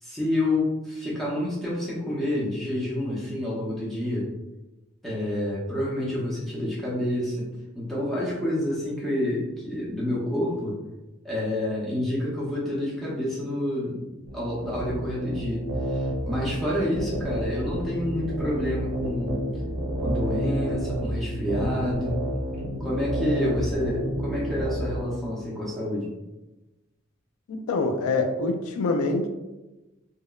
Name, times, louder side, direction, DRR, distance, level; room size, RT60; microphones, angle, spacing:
voice 1, 0.0-4.3 5.0-7.5 7.7-10.8 11.2-14.0 14.3-19.4 20.0-22.1 22.8-26.1, left 1 dB, ahead, -7 dB, 0.6 m, -28 dB
sound 1, 14.3-25.0, equal, 80° right, 0.5 m, -30 dB
voice 2, 27.5-29.3, left 3 dB, 90° left, 6 dB, 0.3 m, -25 dB
2.8 x 2.1 x 2.2 m, 1.1 s
head